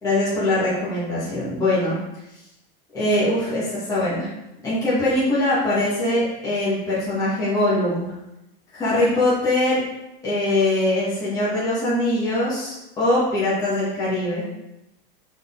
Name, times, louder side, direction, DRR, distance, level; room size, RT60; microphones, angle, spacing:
voice 1, 0.0-1.9 2.9-4.3 4.6-8.1 8.7-9.8 10.2-14.4, left 1 dB, 10° left, -10 dB, 1.5 m, -22 dB
6.5 x 4.1 x 3.8 m, 0.92 s
supercardioid pair, 175°, 29 cm